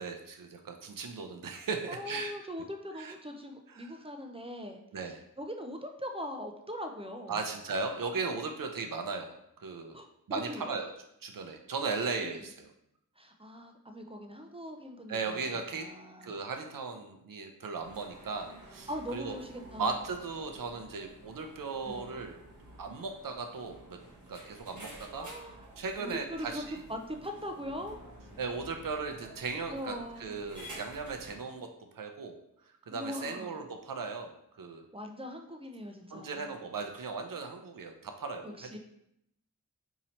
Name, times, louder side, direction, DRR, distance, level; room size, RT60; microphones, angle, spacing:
voice 1, 0.0-2.3 3.0-3.1 3.7-3.9 4.9-5.2 7.3-10.0 10.3-10.9 11.2-12.7 15.1-15.9 16.2-19.3 19.8-22.3 22.8-24.0 24.3-25.3 25.8-26.8 28.4-31.7 31.9-32.4 32.9-34.8 36.1-38.6, right 4 dB, 75° right, 5 dB, 0.5 m, -37 dB
voice 2, 1.9-7.4 9.9-10.7 12.4-12.5 13.2-16.4 18.9-20.0 21.8-22.2 25.1-25.6 26.0-28.0 29.7-30.4 32.9-33.6 34.9-36.6 38.4-38.8, equal, 20° right, 4 dB, 0.4 m, -41 dB
sound 1, 17.8-31.4, right 1 dB, 60° right, 1.2 m, -51 dB
2.9 x 2.7 x 4.2 m, 0.77 s
wide cardioid pair, 60°, 33 cm